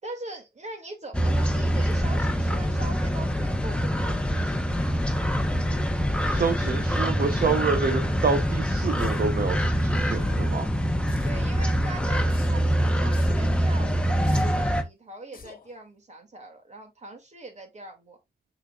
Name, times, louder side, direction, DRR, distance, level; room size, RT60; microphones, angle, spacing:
voice 1, 0.0-4.9 11.2-18.2, right 2 dB, 45° right, 2.6 m, -41 dB
sound 1, 1.1-14.8, equal, 5° left, 1.1 m, -24 dB
voice 2, 6.3-10.7, right 5 dB, 60° right, 1.0 m, -27 dB
sound 2, 9.0-9.4 10.2-10.5 11.1-11.6 12.3-12.7 13.1-13.5 14.2-14.7 15.3-15.7, left 5 dB, 55° left, 1.3 m, -42 dB
6.6 x 6.2 x 2.5 m
wide cardioid pair, 100°, 17 cm